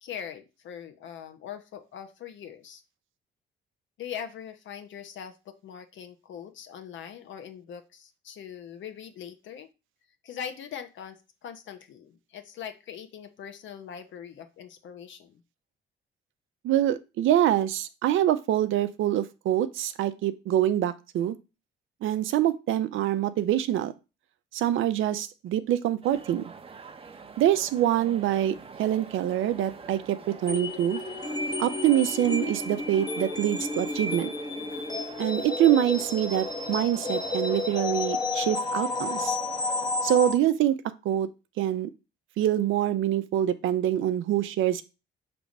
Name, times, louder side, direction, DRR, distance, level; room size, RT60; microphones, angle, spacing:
voice 1, 0.0-2.8 4.0-9.7 10.2-15.4, left 8 dB, 70° left, 9 dB, 1.1 m, -41 dB
voice 2, 16.6-21.4 22.0-23.9 24.5-26.5 27.4-31.0 31.6-34.3 35.2-39.4 40.0-40.8 41.0-41.3 41.6-41.9 42.4-44.8, right 12 dB, 80° right, 12 dB, 0.7 m, -25 dB
sound 1, 26.0-40.3, right 5 dB, 30° right, 0.8 m, -45 dB
sound 2, 30.5-40.4, left 3 dB, 20° left, 0.9 m, -31 dB
6.0 x 3.5 x 5.3 m, 0.28 s
cardioid pair, 90°, 20 cm